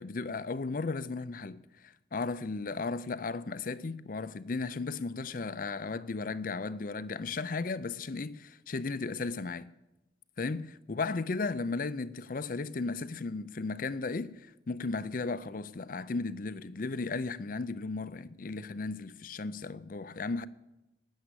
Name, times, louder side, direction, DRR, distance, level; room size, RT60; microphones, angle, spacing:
voice 1, 0.0-9.7 10.4-20.5, left 3 dB, 50° left, 0.5 m, -35 dB
13.0 x 9.7 x 8.1 m
head